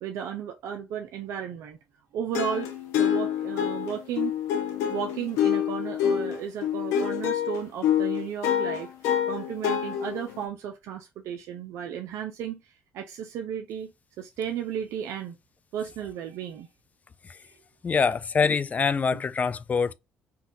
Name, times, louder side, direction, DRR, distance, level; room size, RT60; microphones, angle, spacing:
voice 1, 0.0-1.8 2.1-4.3 4.9-8.9 9.3-13.9 14.2-15.4 15.7-16.7 17.4-17.6 19.1-19.2, right 8 dB, 75° right, 0.5 m, -34 dB
sound 1, 2.3-10.4, left 9 dB, 85° left, 0.6 m, -26 dB
voice 2, 17.8-19.9, left 5 dB, 30° left, 0.3 m, -24 dB
3.8 x 2.3 x 2.5 m
cardioid pair, 80°, 5 cm